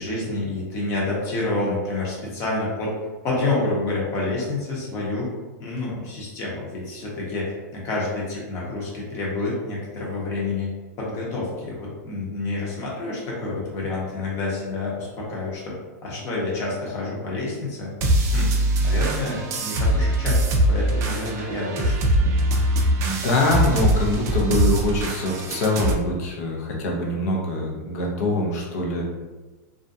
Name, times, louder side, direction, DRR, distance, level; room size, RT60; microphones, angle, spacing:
voice 1, 0.0-2.9 3.2-5.3 5.6-10.7 11.0-15.7 16.0-17.9 18.3-21.9, left 2 dB, 30° left, -4 dB, 0.9 m, -28 dB
sound 1, 18.0-25.9, right 1 dB, 30° right, 0.4 m, -22 dB
voice 2, 23.0-29.0, left 2 dB, 65° left, -1 dB, 0.7 m, -24 dB
2.4 x 2.2 x 2.6 m, 1.2 s
supercardioid pair, 150°, 9 cm